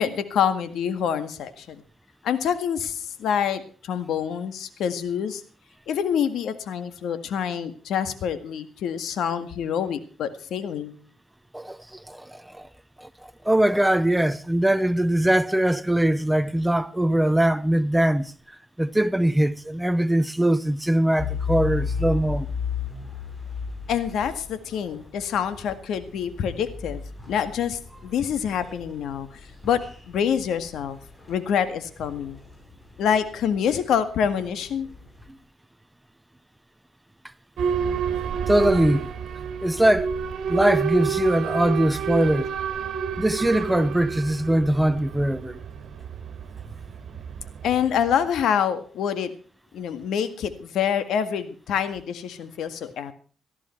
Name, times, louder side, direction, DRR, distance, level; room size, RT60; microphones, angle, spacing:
voice 1, 0.0-1.8 2.2-5.4 5.9-11.0 23.9-29.3 29.6-29.8 30.1-31.0 31.3-32.4 33.0-34.9 47.6-49.3 49.7-53.1, left 8 dB, 75° left, 1.8 m, -26 dB
voice 2, 11.5-12.7 13.0-18.3 18.8-22.5 38.5-39.1 39.6-40.1 40.5-42.5 43.2-45.6, right 1 dB, 5° right, 0.8 m, -22 dB
sound 1, 21.2-35.3, left 5 dB, 20° left, 3.8 m, -35 dB
Boat Water vehicle / Alarm, 37.6-48.2, right 7 dB, 65° right, 2.4 m, -29 dB
17.5 x 13.5 x 4.5 m
cardioid pair, 90°, 0 cm